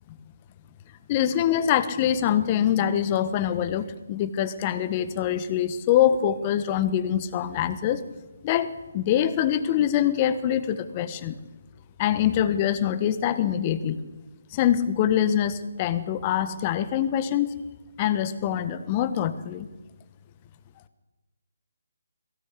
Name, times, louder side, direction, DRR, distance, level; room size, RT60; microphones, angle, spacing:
voice 1, 1.1-8.0 8.4-11.4 12.0-14.0 14.5-17.5 18.0-19.7, left 10 dB, 25° left, 12 dB, 1.5 m, -24 dB
22.5 x 17.0 x 8.4 m, 1.2 s
figure-of-eight pair, 145°, 0 cm